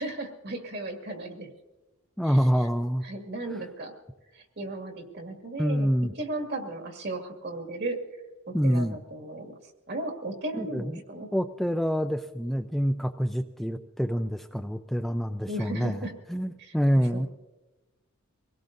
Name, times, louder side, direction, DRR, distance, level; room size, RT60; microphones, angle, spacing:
voice 1, 0.0-1.5 2.3-2.4 3.0-3.9 4.3-5.9 6.2-8.0 8.5-9.6 9.9-11.3 15.5-16.1 16.6-16.7 17.1-17.3, right 2 dB, 50° right, 3 dB, 2.1 m, -35 dB
voice 2, 2.2-3.0 5.6-6.1 8.5-9.0 10.5-11.0 11.3-17.3, equal, ahead, 6 dB, 0.4 m, -26 dB
25.0 x 17.5 x 2.6 m, 1.1 s
head